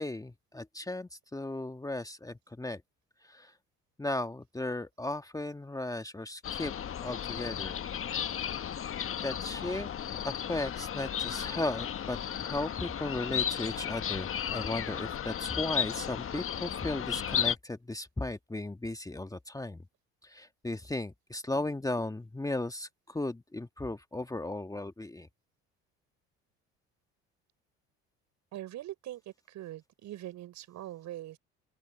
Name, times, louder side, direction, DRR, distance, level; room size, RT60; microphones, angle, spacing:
voice 1, 0.0-2.8 3.2-3.5 4.0-6.7 7.0-7.8 9.2-9.9 10.2-19.8 20.2-25.3, left 2 dB, 10° left, 1.4 m, -36 dB
sound 1, 6.4-17.6, left 9 dB, 45° left, 1.4 m, -34 dB
voice 2, 28.5-31.4, right 14 dB, 65° right, 5.7 m, -42 dB
open air
hypercardioid pair, 70°, 31 cm